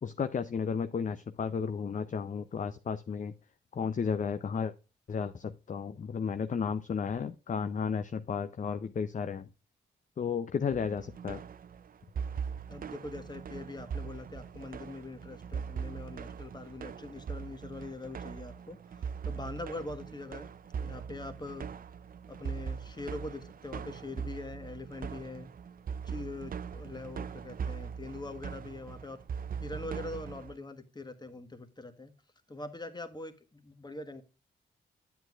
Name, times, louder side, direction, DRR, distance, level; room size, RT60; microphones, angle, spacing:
voice 1, 0.0-3.3 3.7-4.7 5.1-9.5 10.2-11.4, left 6 dB, 40° left, 10 dB, 0.5 m, -33 dB
sound 1, 10.7-30.6, right 6 dB, 45° right, 0.5 m, -41 dB
voice 2, 12.7-20.5 20.8-21.7 22.3-25.5 26.0-29.2 29.6-32.1 32.5-34.2, left 2 dB, 20° left, 8 dB, 1.4 m, -43 dB
8.8 x 8.0 x 2.4 m, 0.32 s
supercardioid pair, 50°, 21 cm